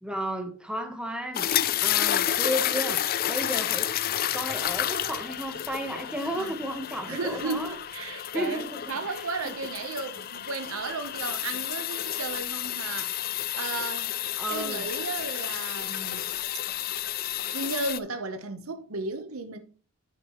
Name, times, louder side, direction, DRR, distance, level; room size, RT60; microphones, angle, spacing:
voice 1, 0.0-1.5 1.8-3.9 4.3-7.7 8.3-9.6 14.4-14.9, equal, 5° right, 1.0 m, -33 dB
sound 1, 1.3-18.0, left 12 dB, 45° left, 0.4 m, -30 dB
voice 2, 7.1-13.1 13.5-14.1 14.5-16.3 17.5-19.6, right 3 dB, 75° right, 0.9 m, -34 dB
10.0 x 6.0 x 3.0 m
head